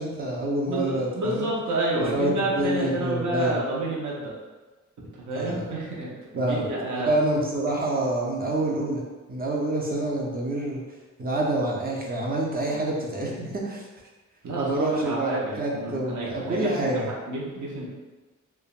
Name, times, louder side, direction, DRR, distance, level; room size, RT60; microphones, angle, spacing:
voice 1, 0.0-1.5 2.1-3.6 5.3-5.7 6.4-6.7 7.0-9.0 9.3-10.8 11.2-13.8 14.6-17.1, right 1 dB, 30° right, -3 dB, 0.5 m, -27 dB
voice 2, 0.7-4.4 5.1-7.1 14.4-16.9 17.2-17.9, right 2 dB, 70° right, -4 dB, 0.7 m, -29 dB
3.2 x 2.0 x 2.4 m, 1.2 s
wide cardioid pair, 135°, 31 cm